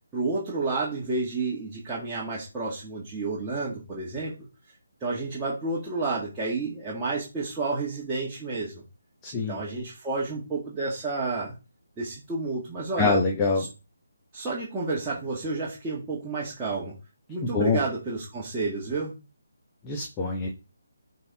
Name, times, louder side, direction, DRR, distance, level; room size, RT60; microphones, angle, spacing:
voice 1, 0.1-4.3 5.0-8.8 9.3-11.6 12.0-13.2 13.6-13.7 14.3-16.9 17.3-19.1, right 3 dB, 10° right, -8 dB, 1.8 m, -30 dB
voice 2, 9.2-9.6 13.0-13.7 17.4-17.8 19.8-20.5, left 4 dB, 15° left, 1 dB, 1.1 m, -25 dB
6.7 x 4.2 x 3.6 m, 0.29 s
figure-of-eight pair, 155°, 0 cm